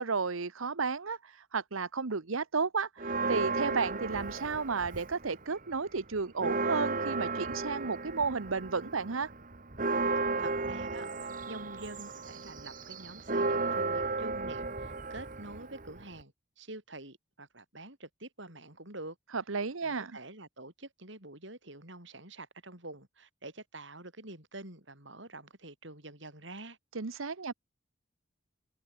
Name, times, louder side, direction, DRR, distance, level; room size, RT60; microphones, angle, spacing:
voice 1, 0.0-9.3 19.3-20.1 26.9-27.5, right 4 dB, 80° right, 1.0 m, -33 dB
Church bell, 3.0-5.4 5.7-5.8 6.2-16.2, right 3 dB, 40° right, 1.7 m, -34 dB
voice 2, 10.4-19.2 19.8-26.8 27.1-27.2, right 2 dB, 60° right, 7.6 m, -47 dB
head